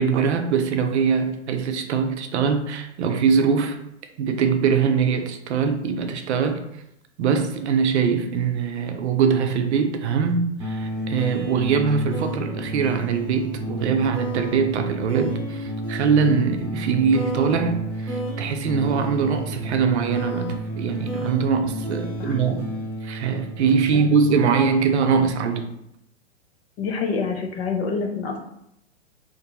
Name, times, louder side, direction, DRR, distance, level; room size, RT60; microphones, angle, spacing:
voice 1, 0.0-3.8 4.2-6.6 7.2-22.7 23.0-25.7, right 6 dB, 65° right, 7 dB, 0.5 m, -22 dB
sound 1, 10.6-25.7, right 2 dB, 10° right, 0.9 m, -31 dB
voice 2, 26.8-28.4, left 4 dB, 55° left, 4 dB, 0.6 m, -27 dB
2.7 x 2.6 x 2.2 m, 0.78 s
hypercardioid pair, 130°, 37 cm